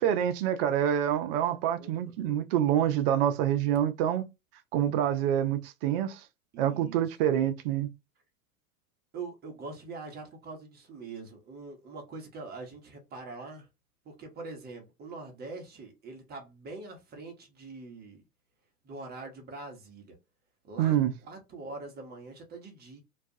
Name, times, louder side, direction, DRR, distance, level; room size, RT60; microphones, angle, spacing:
voice 1, 0.0-4.2 4.7-6.2 6.6-7.9 20.8-21.1, right 10 dB, 40° right, 0.4 m, -26 dB
voice 2, 6.5-7.0 9.1-13.7 14.0-18.2 18.8-20.2 20.6-23.0, right 3 dB, 20° right, 0.8 m, -43 dB
2.3 x 2.3 x 2.6 m
hypercardioid pair, 100°, 46 cm